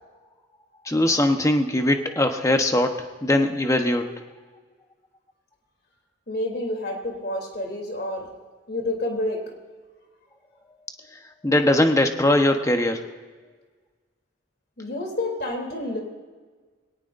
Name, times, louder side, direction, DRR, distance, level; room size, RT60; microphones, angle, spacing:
voice 1, 0.8-4.0 11.4-13.0, left 1 dB, 15° left, 5 dB, 1.1 m, -21 dB
voice 2, 6.3-8.3 8.7-9.5 14.8-16.0, left 1 dB, 55° left, 2 dB, 3.2 m, -29 dB
21.5 x 18.5 x 2.6 m, 1.4 s
head